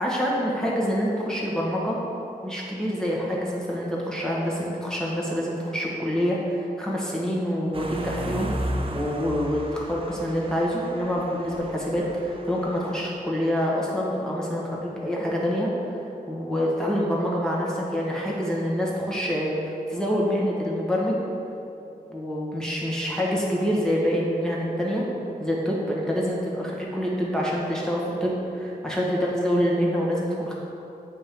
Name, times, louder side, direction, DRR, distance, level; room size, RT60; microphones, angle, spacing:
voice 1, 0.0-2.0 2.4-8.5 8.9-16.0 16.3-21.2 22.1-25.0 25.4-30.5, equal, 5° left, -4 dB, 1.3 m, -26 dB
sound 1, 7.7-13.1, right 1 dB, 35° right, 0.5 m, -35 dB
7.7 x 3.0 x 5.2 m, 2.8 s
wide cardioid pair, 75°, 16 cm